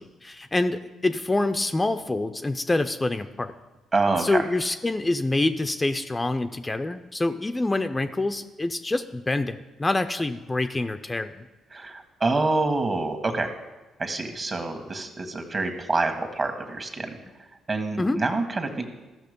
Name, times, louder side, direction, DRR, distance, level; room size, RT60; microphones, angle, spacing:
voice 1, 0.0-3.5 4.2-11.5 18.0-18.2, left 2 dB, 20° left, 8 dB, 0.5 m, -26 dB
voice 2, 3.9-4.4 11.7-13.5 14.0-17.2 17.7-18.9, right 3 dB, 40° right, 6 dB, 1.6 m, -26 dB
14.0 x 6.1 x 5.2 m, 1.1 s
supercardioid pair, 65°, 0 cm